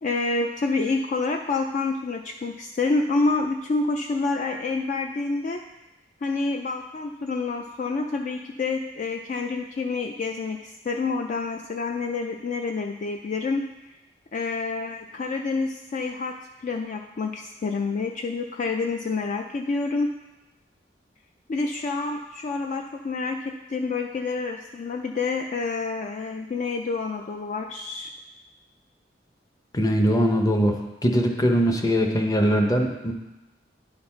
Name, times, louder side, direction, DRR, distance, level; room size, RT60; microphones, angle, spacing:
voice 1, 0.0-5.6 6.2-13.7 14.3-16.4 16.6-20.1 21.5-28.1, left 3 dB, 45° left, 4 dB, 0.4 m, -28 dB
voice 2, 29.7-30.8 31.0-33.1, equal, 20° left, 3 dB, 0.7 m, -21 dB
10.5 x 4.0 x 4.3 m, 1.0 s
head